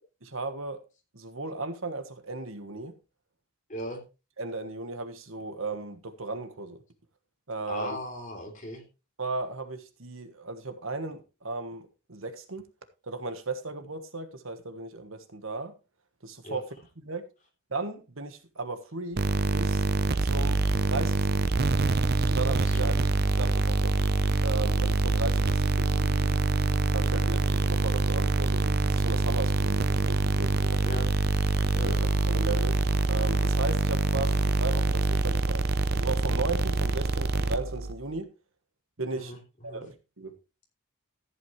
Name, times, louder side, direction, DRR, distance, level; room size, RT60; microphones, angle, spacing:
voice 1, 0.2-0.8 1.1-2.9 4.4-6.8 7.5-8.0 9.2-12.6 13.1-15.7 16.2-16.7 17.0-17.2 17.7-19.2 19.5-19.8 20.2-21.4 22.3-23.0 23.4-24.0 24.4-26.4 26.9-31.1 31.7-32.0 32.3-35.6 35.9-38.3 39.0-39.4 39.6-40.3, right 3 dB, 65° right, 1.4 m, -36 dB
voice 2, 3.7-4.0 7.7-8.8 16.4-16.6 22.6-23.0 30.8-31.1 31.7-32.0 39.1-39.8, left 1 dB, 35° left, 3.3 m, -38 dB
sound 1, 19.2-37.9, right 3 dB, 45° right, 0.6 m, -25 dB
14.0 x 8.6 x 3.2 m
head